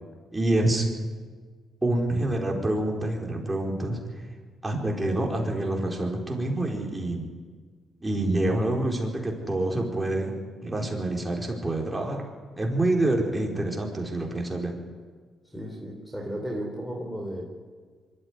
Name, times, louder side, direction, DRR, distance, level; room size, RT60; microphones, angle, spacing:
voice 1, 0.3-0.9 1.8-4.2 4.6-7.2 8.0-12.2 12.6-14.7, right 1 dB, 15° right, 0 dB, 4.7 m, -27 dB
voice 2, 15.4-17.5, equal, ahead, 0 dB, 3.7 m, -34 dB
24.0 x 13.5 x 9.9 m, 1.6 s
cardioid pair, 90°, 0 cm